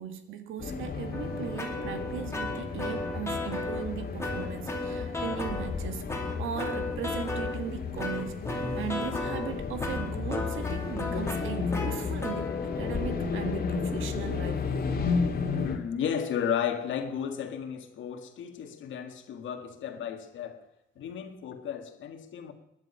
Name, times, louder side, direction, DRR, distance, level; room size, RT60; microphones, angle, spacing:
voice 1, 0.0-6.0 6.4-8.3 8.8-12.5 12.8-14.6, right 8 dB, 85° right, 1.7 m, -38 dB
sound 1, 0.6-15.8, left 5 dB, 50° left, 2.3 m, -33 dB
sound 2, 1.1-3.9 4.2-5.7 6.1-7.6 8.0-15.0, left 2 dB, 15° left, 2.6 m, -35 dB
voice 2, 15.5-20.7 21.0-22.5, left 8 dB, 75° left, 1.8 m, -33 dB
19.5 x 11.0 x 5.6 m
cardioid pair, 90°, 20 cm